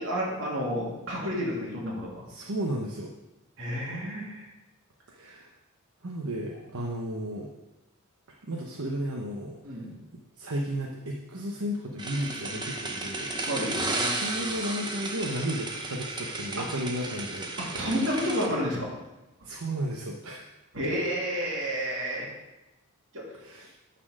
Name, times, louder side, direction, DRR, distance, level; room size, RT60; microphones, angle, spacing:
voice 1, 0.0-2.3 3.6-4.5 9.6-10.0 13.4-13.8 16.6-16.7 17.6-18.9 19.4-19.5 20.7-22.3 23.1-23.2, equal, 60° right, -4 dB, 2.6 m, -30 dB
voice 2, 2.3-3.1 5.1-5.5 6.0-7.5 8.3-9.8 10.4-13.3 14.2-17.6 18.1-18.2 19.4-20.5 23.3-23.7, right 1 dB, 75° right, 0 dB, 0.9 m, -34 dB
sound 1, 12.0-18.5, right 2 dB, 20° right, 0.8 m, -33 dB
9.7 x 4.3 x 6.4 m, 1.0 s
head